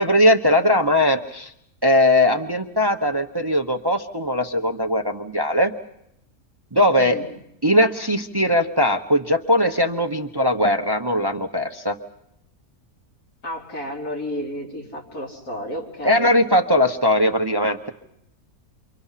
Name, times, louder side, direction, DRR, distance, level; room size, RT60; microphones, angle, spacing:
voice 1, 0.0-1.5 1.8-5.7 6.7-7.2 7.6-12.0 16.0-17.9, left 1 dB, 20° right, 6 dB, 0.8 m, -19 dB
voice 2, 7.0-7.3 13.4-16.3, equal, 85° left, -2 dB, 4.6 m, -32 dB
29.0 x 24.5 x 5.7 m, 0.79 s
omnidirectional pair, 1.5 m